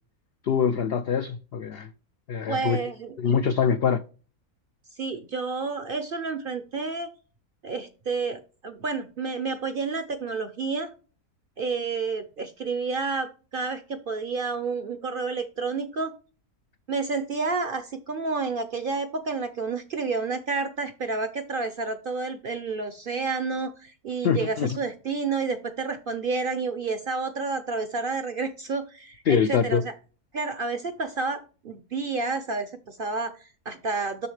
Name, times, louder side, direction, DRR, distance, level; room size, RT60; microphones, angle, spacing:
voice 1, 0.4-1.9 2.3-2.8 3.2-4.0 24.2-24.7 29.3-29.8, left 7 dB, 85° left, 0.5 m, -24 dB
voice 2, 2.5-3.2 5.0-7.1 7.6-10.9 11.6-16.1 16.9-29.9 30.3-34.3, right 4 dB, 55° right, 0.6 m, -30 dB
7.1 x 6.3 x 3.2 m
omnidirectional pair, 1.6 m